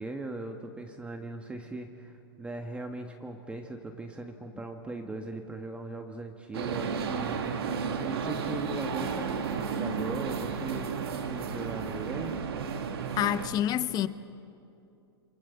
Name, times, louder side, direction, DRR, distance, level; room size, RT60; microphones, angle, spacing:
voice 1, 0.0-12.4, right 2 dB, 10° right, 1.6 m, -39 dB
sound 1, 6.5-13.5, right 6 dB, 75° right, 2.9 m, -33 dB
voice 2, 13.2-14.1, left 11 dB, 30° left, 1.0 m, -27 dB
28.5 x 26.0 x 7.2 m
hypercardioid pair, 115°, 13 cm